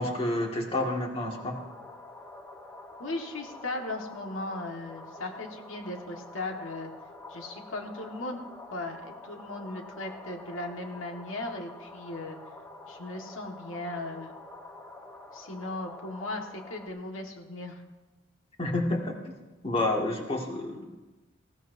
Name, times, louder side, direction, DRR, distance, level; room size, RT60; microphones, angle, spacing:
voice 1, 0.0-1.6 18.6-19.3 19.6-20.9, left 2 dB, 30° left, 0 dB, 2.1 m, -29 dB
sound 1, 1.1-16.9, left 2 dB, 15° left, 1.3 m, -47 dB
voice 2, 3.0-6.9 7.3-8.4 8.7-12.4 12.9-14.3 15.3-17.8, left 2 dB, 85° left, 2 dB, 1.7 m, -37 dB
19.5 x 15.5 x 2.7 m, 1.2 s
head